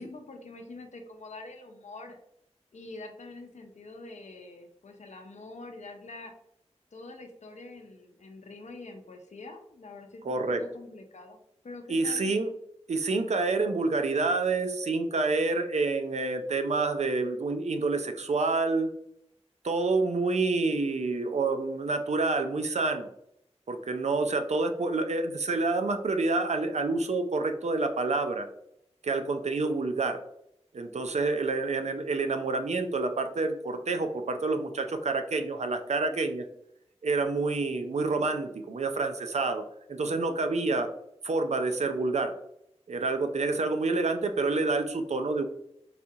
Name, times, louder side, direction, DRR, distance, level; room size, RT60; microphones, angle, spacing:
voice 1, 0.0-2.2 2.7-6.3 6.9-11.4 11.6-12.4, left 2 dB, 85° left, 5 dB, 0.6 m, -45 dB
voice 2, 10.2-10.6 11.9-12.5 12.9-18.9 19.6-23.1 23.7-28.5 29.0-30.2 30.7-36.5 37.0-39.6 39.9-40.9 41.2-42.3 42.9-45.5, right 3 dB, 75° right, 6 dB, 0.4 m, -28 dB
4.1 x 2.7 x 2.4 m, 0.75 s
wide cardioid pair, 50°, 12 cm